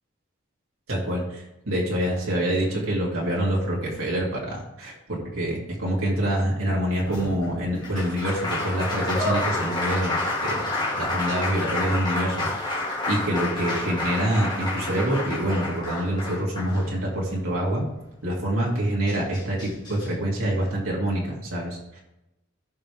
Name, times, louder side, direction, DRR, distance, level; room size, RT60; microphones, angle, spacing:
voice 1, 0.9-10.7 11.0-12.8 13.1-17.8 18.2-22.0, right 1 dB, 80° right, -4 dB, 2.6 m, -26 dB
Applause, 7.0-17.3 18.7-18.8 19.1-20.1, left 2 dB, 20° left, 2.3 m, -29 dB
15.0 x 5.4 x 3.5 m, 0.91 s
head